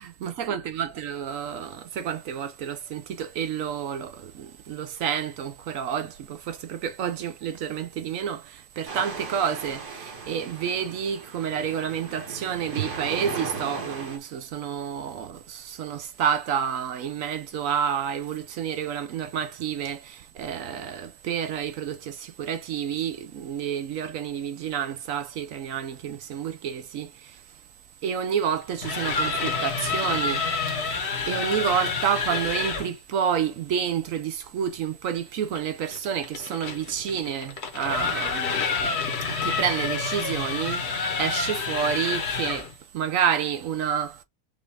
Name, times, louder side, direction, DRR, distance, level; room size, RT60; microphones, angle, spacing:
voice 1, 0.2-27.4 28.0-30.6 31.2-38.6 39.2-40.8 41.2-44.2, right 8 dB, 65° right, 0.8 m, -29 dB
sound 1, 8.9-14.2, right 5 dB, 45° right, 1.4 m, -36 dB
sound 2, 28.6-32.9 35.5-42.7, left 5 dB, 45° left, 1.1 m, -28 dB
5.4 x 2.5 x 3.2 m
omnidirectional pair, 1.9 m